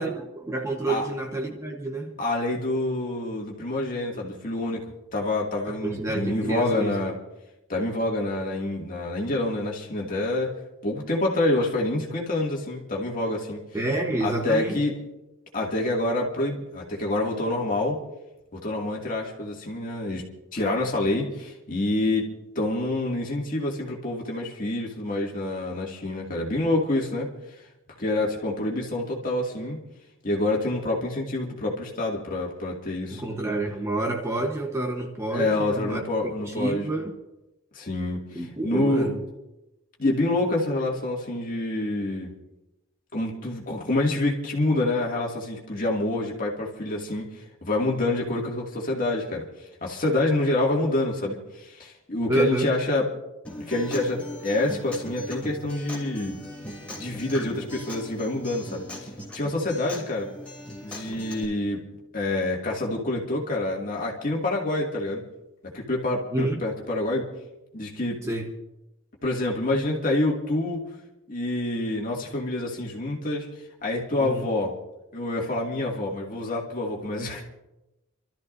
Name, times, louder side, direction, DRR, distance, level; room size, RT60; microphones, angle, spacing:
voice 1, 0.0-2.2 5.6-7.0 13.7-14.8 33.1-36.0 36.4-37.1 38.3-39.2 52.3-52.7 66.3-66.6 68.2-68.5 74.2-74.5, right 2 dB, 15° right, 1 dB, 1.1 m, -28 dB
voice 2, 2.2-4.8 5.1-7.1 7.7-10.5 10.8-13.6 14.2-14.9 15.5-18.0 18.5-20.2 20.5-22.3 22.6-27.3 28.0-29.8 30.2-33.2 35.3-36.8 37.7-39.1 40.0-42.3 43.1-47.2 47.6-49.4 49.8-53.1 53.6-56.3 57.0-58.8 59.3-60.3 60.8-61.8 62.1-65.2 65.7-67.2 67.7-68.2 69.2-70.8 71.3-73.5 73.8-74.7 75.1-77.4, left 2 dB, 40° left, -2 dB, 2.3 m, -27 dB
Acoustic guitar, 53.4-61.4, left 1 dB, 5° left, 3.2 m, -39 dB
29.0 x 13.0 x 2.7 m, 0.97 s
head